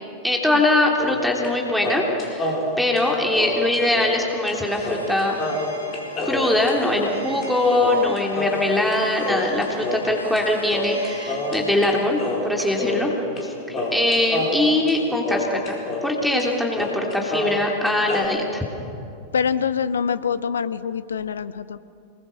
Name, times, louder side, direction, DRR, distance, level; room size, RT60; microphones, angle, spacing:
voice 1, 0.2-5.4 6.2-13.1 13.4-18.6, left 2 dB, ahead, -1 dB, 3.2 m, -22 dB
sound 1, 1.0-1.5 1.8-4.2 4.5-4.6 4.8-10.4 10.7-11.9 12.2-13.5 13.7-16.1 16.4-16.5 16.8-18.3, left 1 dB, 25° left, 4.7 m, -27 dB
sound 2, 4.3-15.4, left 1 dB, 85° left, 2.7 m, -40 dB
voice 2, 19.3-21.8, left 6 dB, 70° left, 14 dB, 0.9 m, -25 dB
26.5 x 21.0 x 6.6 m, 2.6 s
figure-of-eight pair, 90°, 0 cm